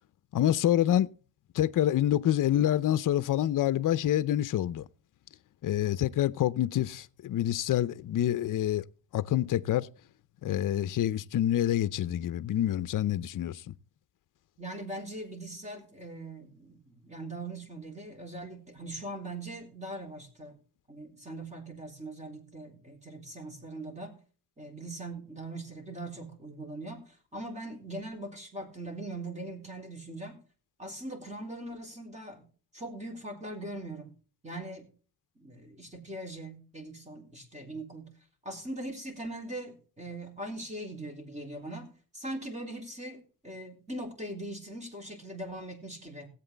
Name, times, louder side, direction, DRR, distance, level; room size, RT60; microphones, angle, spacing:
voice 1, 0.3-1.1 1.5-4.9 5.6-8.8 9.1-9.9 10.4-13.7, left 12 dB, 55° left, 0.6 m, -27 dB
voice 2, 14.6-20.6 20.9-24.2 24.6-30.4 30.8-32.5 32.7-34.1 34.4-34.9 35.4-38.1 38.4-46.3, right 1 dB, 20° right, 3.7 m, -41 dB
18.0 x 8.2 x 3.3 m
cardioid pair, 130°, 38 cm